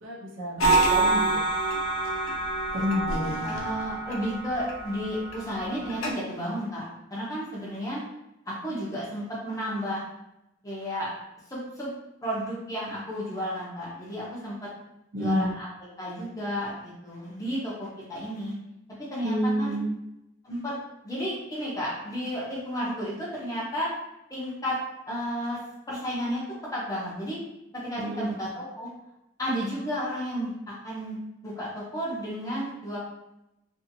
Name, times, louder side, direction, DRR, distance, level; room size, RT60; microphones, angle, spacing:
voice 1, 0.0-1.3 2.7-3.4 15.1-15.5 19.2-19.9 28.0-28.4, equal, 65° right, -4 dB, 0.7 m, -29 dB
sound 1, 0.6-6.1, right 3 dB, 80° left, 0.5 m, -27 dB
voice 2, 3.4-8.0 8.5-10.0 10.6-11.1 11.5-11.9 12.2-14.7 15.1-15.7 16.0-18.5 19.1-19.8 20.4-20.7 21.0-23.9 24.3-24.8 25.1-25.6 25.9-26.4 26.7-27.4 27.7-28.9 29.4-30.5 30.8-33.0, equal, 15° left, -7 dB, 0.7 m, -32 dB
2.6 x 2.6 x 2.7 m, 0.88 s
head